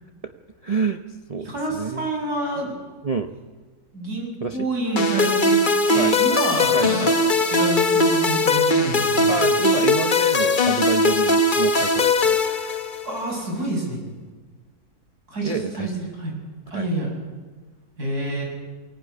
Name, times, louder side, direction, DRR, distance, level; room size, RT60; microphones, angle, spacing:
voice 1, 0.6-1.0 1.3-2.1 3.0-3.4 4.4-4.7 5.9-6.1 6.7-6.9 9.3-12.4 15.4-15.9 16.7-16.9, right 4 dB, 30° right, 6 dB, 0.8 m, -27 dB
voice 2, 1.4-2.8 3.9-5.6 5.9-7.1 7.4-9.4 13.0-14.0 15.3-16.4 16.7-17.1 18.0-18.4, right 1 dB, 75° right, 0 dB, 8.0 m, -28 dB
sound 1, 5.0-13.2, left 2 dB, 35° left, 1.3 m, -20 dB
23.0 x 18.5 x 9.8 m, 1.4 s
omnidirectional pair, 1.7 m